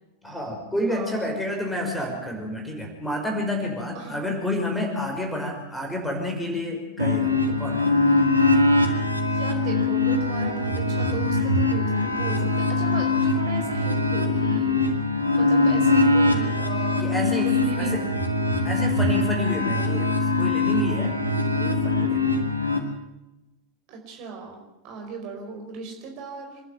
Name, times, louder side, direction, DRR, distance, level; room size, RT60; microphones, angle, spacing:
voice 1, 0.2-8.2 17.0-18.1 18.6-21.2 21.5-22.3, left 1 dB, 5° left, 2 dB, 5.7 m, -30 dB
voice 2, 0.9-1.3 4.0-4.3 9.3-14.7 15.3-18.1 23.9-26.6, right 5 dB, 45° right, 2 dB, 5.0 m, -37 dB
sound 1, 7.0-22.8, left 2 dB, 90° right, 2.3 m, -22 dB
27.0 x 11.5 x 9.5 m, 1.0 s
figure-of-eight pair, 90°, 0 cm